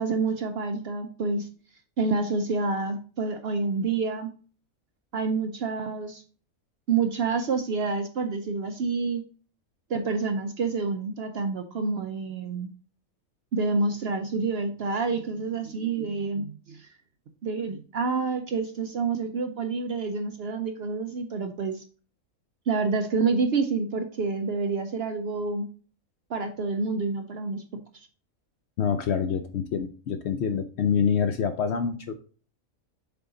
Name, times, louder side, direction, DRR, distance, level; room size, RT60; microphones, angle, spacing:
voice 1, 0.0-1.5 2.0-4.3 5.1-6.2 6.9-9.2 9.9-12.7 13.5-16.9 17.4-21.8 22.7-25.7 26.3-27.6, right 4 dB, 60° right, 6 dB, 0.7 m, -28 dB
voice 2, 28.8-32.2, left 7 dB, 65° left, 8 dB, 0.7 m, -26 dB
6.9 x 3.8 x 3.8 m, 0.40 s
omnidirectional pair, 1.5 m